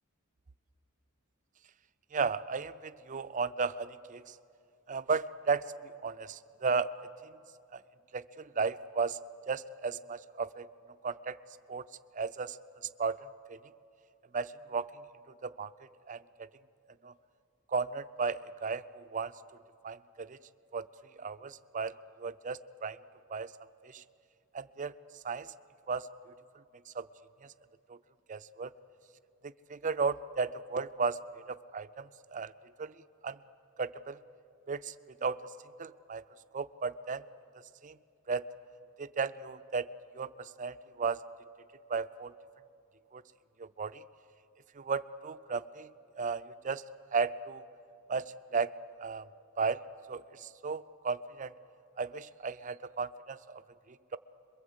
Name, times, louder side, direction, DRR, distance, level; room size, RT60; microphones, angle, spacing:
voice 1, 2.1-4.3 4.9-5.7 6.0-6.9 7.7-7.8 8.1-9.2 9.5-10.7 11.0-11.4 11.7-11.8 12.1-12.6 13.0-13.2 13.5-13.6 14.3-14.9 15.4-15.7 16.1-16.5 17.0-17.1 17.7-19.3 19.8-20.4 20.7-20.8 21.2-21.9 22.2-23.0 23.3-23.5 23.8-24.0 24.5-24.9 25.2-25.5 25.9-26.1 26.9-27.1 27.9-28.0 28.3-28.7 29.7-31.4 31.7-32.5 32.8-32.9 33.2-33.4 33.8-34.2 34.7-34.9 35.2-35.4 35.8-36.2 36.5-37.2 37.8-38.0 38.3-38.4 39.0-39.9 40.1-41.2 41.9-42.3 43.1-43.2 43.6-44.0 44.8-45.9 46.2-46.8 47.1-47.6 48.1-48.7 49.0-49.3 49.6-49.8 50.1-51.5 52.0-53.4, right 5 dB, 35° right, 13 dB, 0.5 m, -34 dB
27.0 x 22.5 x 8.1 m, 2.6 s
head